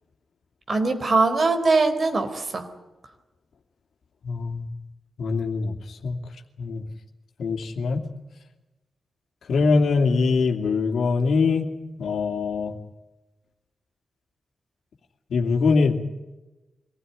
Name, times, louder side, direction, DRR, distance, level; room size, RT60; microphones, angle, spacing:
voice 1, 0.7-2.7, right 3 dB, 50° right, 8 dB, 4.0 m, -21 dB
voice 2, 4.2-4.7 5.2-6.2 6.6-6.8 7.4-8.0 9.5-11.7 12.0-12.7 15.3-16.0, left 4 dB, 80° left, 3 dB, 2.6 m, -23 dB
25.0 x 16.0 x 9.7 m, 1.1 s
cardioid pair, 70°, 0 cm